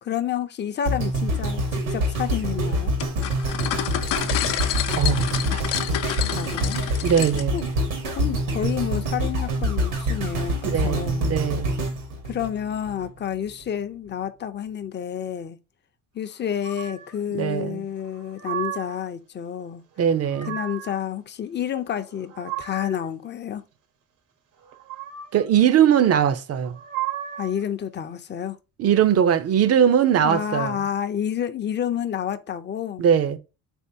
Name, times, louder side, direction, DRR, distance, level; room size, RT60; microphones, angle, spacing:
voice 1, 0.0-2.9 6.3-6.8 7.5-7.6 8.1-11.3 12.2-15.6 16.1-19.8 20.4-23.6 27.4-28.6 30.2-33.0, left 9 dB, 35° left, 0.6 m, -29 dB
sound 1, 0.9-13.1 13.6-13.7, right 1 dB, 85° right, 1.8 m, -26 dB
sound 2, 3.0-7.7, left 11 dB, 70° left, 0.7 m, -28 dB
voice 2, 5.0-5.9 7.0-7.7 10.7-11.7 17.3-17.8 20.0-20.5 25.3-26.8 28.8-30.8 33.0-33.4, right 9 dB, 50° right, 0.6 m, -21 dB
sound 3, 16.6-17.2 18.0-19.1 20.0-21.0 22.0-23.1 24.6-25.5 26.6-27.6, right 11 dB, 70° right, 1.1 m, -34 dB
3.7 x 3.5 x 2.7 m
cardioid pair, 95°, 32 cm